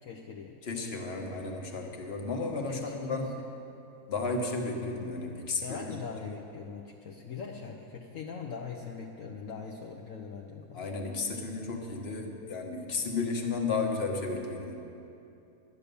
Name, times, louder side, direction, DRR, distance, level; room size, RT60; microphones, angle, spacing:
voice 1, 0.0-0.6 2.7-3.4 5.6-10.9, left 5 dB, 65° left, 0 dB, 1.1 m, -41 dB
voice 2, 0.6-3.4 4.1-6.3 10.7-14.7, left 3 dB, 45° left, 2 dB, 1.4 m, -33 dB
12.0 x 9.6 x 6.9 m, 2.8 s
omnidirectional pair, 1.5 m